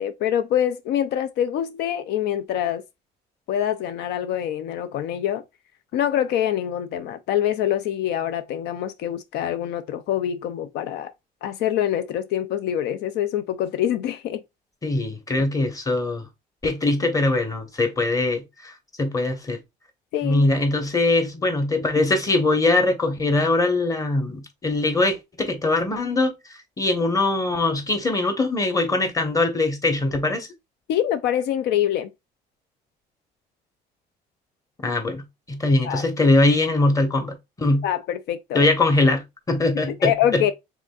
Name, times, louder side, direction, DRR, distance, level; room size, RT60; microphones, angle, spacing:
voice 1, 0.0-2.8 3.5-5.4 5.9-11.1 11.4-14.4 20.1-20.5 30.9-32.1 35.8-36.0 37.8-38.7 39.9-40.5, left 10 dB, 80° left, 0.5 m, -25 dB
voice 2, 14.8-16.3 16.6-18.7 19.0-19.6 20.2-26.3 26.8-30.5 34.8-37.8 38.5-40.4, left 2 dB, 20° left, 1.3 m, -22 dB
5.0 x 3.7 x 2.4 m
cardioid pair, 110°, 17 cm